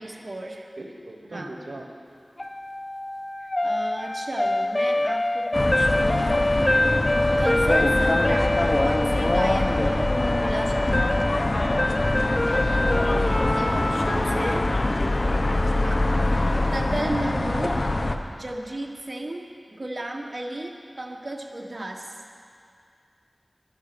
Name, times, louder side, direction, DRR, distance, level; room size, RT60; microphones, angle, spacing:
voice 1, 0.0-0.7 1.2-1.5 3.6-6.5 7.2-11.3 13.2-14.7 15.8-16.1 16.3-17.8 18.4-22.1, right 1 dB, 50° right, 2 dB, 1.3 m, -34 dB
voice 2, 0.8-1.9 12.2-12.4 12.7-14.4, right 1 dB, 90° right, 1 dB, 1.1 m, -38 dB
sound 1, 2.4-16.5, left 1 dB, 35° left, 0.4 m, -26 dB
sound 2, 5.5-18.2, left 2 dB, 55° left, 0.8 m, -24 dB
12.0 x 11.0 x 6.9 m, 2.3 s
wide cardioid pair, 55°, 0 cm